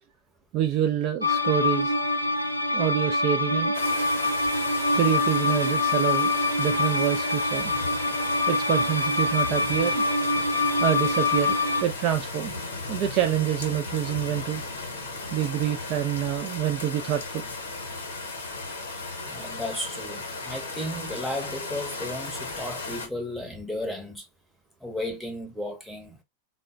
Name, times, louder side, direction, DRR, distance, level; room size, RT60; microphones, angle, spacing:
voice 1, 0.5-1.9 2.7-3.7 4.9-6.3 6.6-7.7 8.4-10.0 10.8-12.5 12.9-14.6 15.3-17.4, right 11 dB, 40° right, 0.4 m, -27 dB
sound 1, 1.2-11.8, left 2 dB, 85° left, 0.4 m, -25 dB
sound 2, 3.7-23.1, left 3 dB, 65° left, 0.8 m, -35 dB
voice 2, 19.2-24.3 24.8-26.2, left 1 dB, ahead, 0.8 m, -34 dB
3.7 x 2.0 x 2.3 m
figure-of-eight pair, 90°, 0 cm